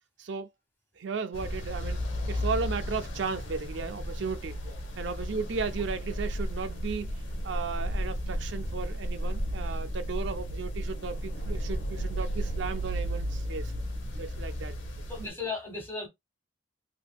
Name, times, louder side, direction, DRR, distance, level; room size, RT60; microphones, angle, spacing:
voice 1, 0.2-0.5 1.0-2.0 2.3-4.6 5.0-7.1 7.4-13.7 14.2-14.8, right 5 dB, 60° right, 0.4 m, -35 dB
sound 1, 1.3-15.3, equal, 70° left, 0.8 m, -33 dB
voice 2, 15.1-16.1, left 4 dB, 10° left, 1.4 m, -37 dB
3.4 x 2.8 x 2.2 m
head